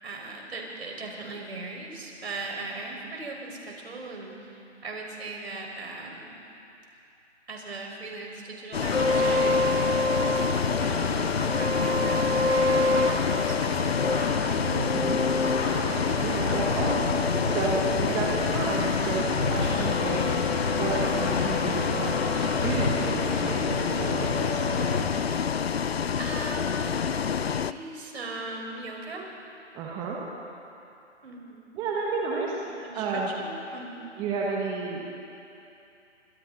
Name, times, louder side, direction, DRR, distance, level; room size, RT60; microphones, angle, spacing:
voice 1, 0.0-6.3 7.5-10.5 10.8-14.4 26.2-26.9 27.3-29.3 31.2-31.8 32.8-34.1, right 3 dB, 60° right, 0 dB, 5.5 m, -39 dB
Bus, 8.7-27.7, left 7 dB, 55° left, 0.7 m, -28 dB
sound 1, 8.8-25.0, left 2 dB, 75° left, 4.5 m, -28 dB
voice 2, 14.7-15.2 16.2-17.1 17.4-24.6 29.7-30.2 31.7-32.5 32.9-33.3 34.2-35.1, right 4 dB, 10° right, -3 dB, 1.5 m, -31 dB
29.0 x 25.5 x 4.1 m, 2.9 s
figure-of-eight pair, 150°, 37 cm